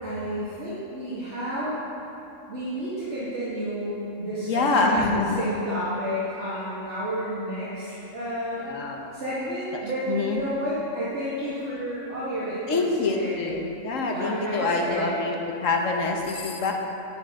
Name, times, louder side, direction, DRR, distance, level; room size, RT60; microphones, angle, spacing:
voice 1, 0.0-1.8 2.5-8.7 9.1-13.6 14.1-15.1, equal, 65° right, -11 dB, 2.1 m, -31 dB
voice 2, 4.4-5.4 8.6-9.0 9.8-10.4 12.7-15.3 15.6-16.7, left 3 dB, 85° left, 1 dB, 1.4 m, -25 dB
10.5 x 9.9 x 3.7 m, 2.9 s
omnidirectional pair, 1.3 m